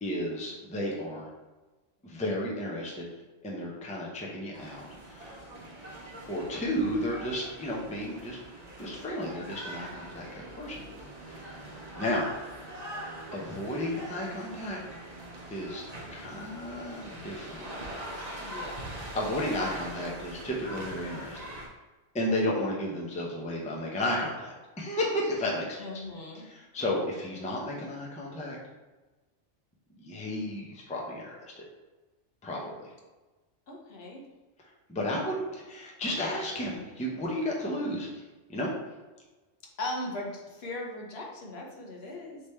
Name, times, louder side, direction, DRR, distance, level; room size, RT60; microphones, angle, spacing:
voice 1, 0.0-1.3 2.0-3.1 3.4-5.4 6.3-8.4 8.8-10.8 11.3-11.7 12.0-12.3 13.3-14.8 15.5-15.8 16.1-17.7 18.1-18.3 19.1-21.4 22.1-25.8 26.4-28.6 30.0-31.6 32.4-32.7 34.9-38.1 38.5-38.7, left 1 dB, 10° left, -3 dB, 0.5 m, -33 dB
sound 1, 4.5-21.7, right 1 dB, 40° right, 0.9 m, -42 dB
voice 2, 18.4-19.0 25.8-26.4 33.7-34.2 39.8-42.4, left 1 dB, 60° left, -1 dB, 1.0 m, -38 dB
3.4 x 3.4 x 4.2 m, 1.2 s
omnidirectional pair, 1.2 m